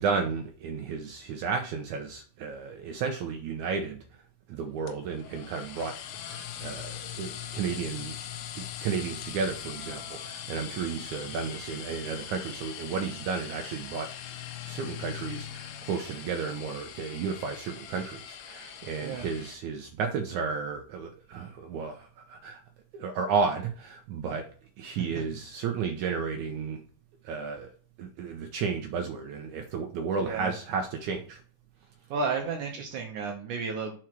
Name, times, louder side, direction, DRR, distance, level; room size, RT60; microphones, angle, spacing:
voice 1, 0.0-4.0 4.5-8.2 8.5-14.1 14.7-22.6 22.9-24.5 24.8-26.8 27.2-27.7 28.0-31.4, right 5 dB, 85° right, 4 dB, 1.7 m, -33 dB
sound 1, 4.9-19.6, left 9 dB, 85° left, 2.9 m, -41 dB
voice 2, 30.2-30.5 32.1-33.9, right 4 dB, 70° right, 2 dB, 2.1 m, -32 dB
6.3 x 4.6 x 5.9 m, 0.42 s
omnidirectional pair, 4.6 m